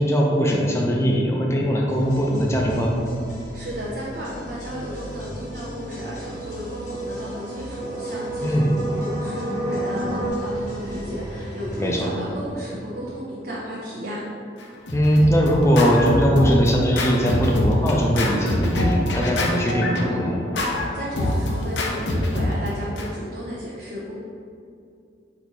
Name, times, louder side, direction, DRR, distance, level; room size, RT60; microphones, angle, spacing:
voice 1, 0.0-3.0 8.4-8.7 11.8-12.1 14.9-20.4, equal, 15° left, -1 dB, 0.5 m, -20 dB
sound 1, 1.9-13.6, equal, 40° left, 0.9 m, -38 dB
voice 2, 3.5-14.2 20.7-24.2, equal, 50° right, -6 dB, 0.6 m, -33 dB
sound 2, 5.1-10.3, right 2 dB, 90° right, 1.3 m, -32 dB
Scratching (performance technique), 14.6-23.1, left 1 dB, 70° left, 0.6 m, -25 dB
4.1 x 2.8 x 4.5 m, 2.4 s
head